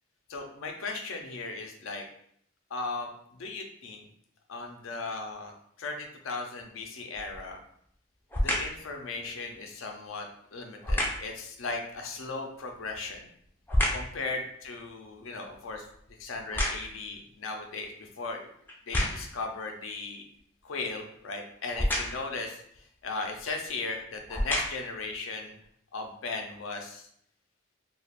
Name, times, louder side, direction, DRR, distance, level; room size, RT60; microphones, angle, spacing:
voice 1, 0.3-2.0 2.7-3.1 3.4-4.1 4.5-5.5 5.8-7.6 8.4-10.3 10.5-13.3 13.9-15.8 16.2-18.4 18.9-20.2 20.6-25.5 25.9-27.1, left 3 dB, 75° left, 3 dB, 0.5 m, -37 dB
sound 1, 7.1-7.5 8.3-8.8 10.8-11.3 12.7-14.2 14.6-17.1 17.8-17.9 18.7-19.4 21.7-22.3 23.4-23.5 24.2-25.0 25.6-25.7, left 1 dB, 10° left, 0.4 m, -30 dB
2.4 x 2.3 x 3.4 m, 0.67 s
head